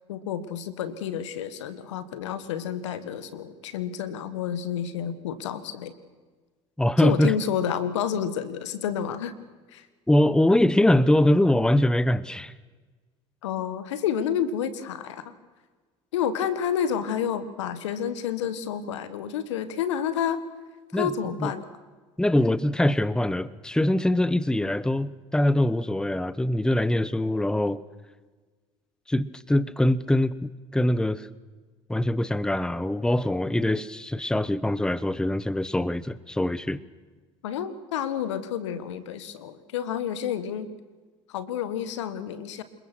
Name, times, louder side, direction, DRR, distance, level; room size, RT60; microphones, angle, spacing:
voice 1, 0.1-6.0 7.0-9.3 9.7-9.9 13.4-15.3 16.1-20.4 20.9-21.7 37.4-40.7 41.3-42.6, left 8 dB, 85° left, 14 dB, 1.6 m, -29 dB
voice 2, 6.8-7.3 10.1-12.5 20.9-21.1 21.4-21.5 22.2-27.8 29.1-31.3 31.9-36.8, left 1 dB, 5° left, 19 dB, 0.9 m, -23 dB
27.0 x 22.5 x 6.2 m, 1.4 s
hypercardioid pair, 70°, 15 cm